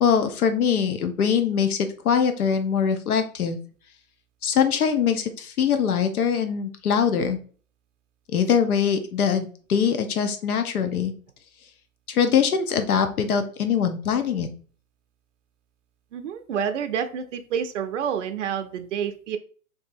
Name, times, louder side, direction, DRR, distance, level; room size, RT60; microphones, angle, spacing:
voice 1, 0.0-3.6 4.4-7.4 8.3-11.1 12.1-14.5, left 7 dB, 80° left, 8 dB, 0.7 m, -22 dB
voice 2, 16.1-19.4, right 8 dB, 60° right, 7 dB, 0.5 m, -28 dB
3.6 x 2.7 x 2.5 m, 0.42 s
hypercardioid pair, 145°, 43 cm